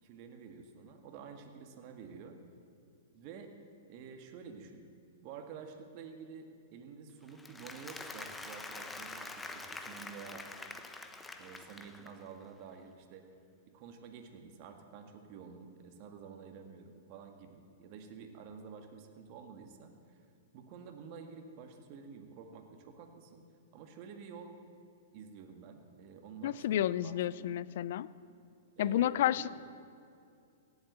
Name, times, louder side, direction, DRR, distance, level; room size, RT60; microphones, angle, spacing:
voice 1, 0.0-2.4 3.1-3.5 3.9-4.8 5.2-10.5 11.4-13.3 13.7-20.2 20.5-23.4 23.7-24.5 25.1-27.6 28.8-29.5, right 6 dB, 45° right, 5 dB, 1.8 m, -50 dB
Applause, 7.3-12.3, left 3 dB, 10° left, 0.9 m, -46 dB
voice 2, 26.4-28.1 28.8-29.5, left 12 dB, 60° left, 19 dB, 0.4 m, -30 dB
16.5 x 8.1 x 7.9 m, 2.5 s
hypercardioid pair, 115°, 0 cm